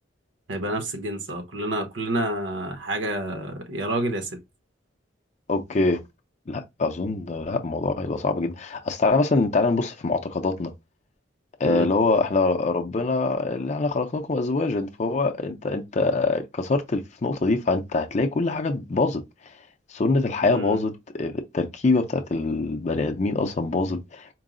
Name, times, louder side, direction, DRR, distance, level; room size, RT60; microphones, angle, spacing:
voice 1, 0.5-4.3 11.6-11.9 20.5-20.8, right 1 dB, 75° right, 1.0 m, -28 dB
voice 2, 5.5-6.0 6.5-10.7 11.6-19.2 19.9-24.3, left 3 dB, 35° left, 0.4 m, -24 dB
4.6 x 2.0 x 3.6 m
head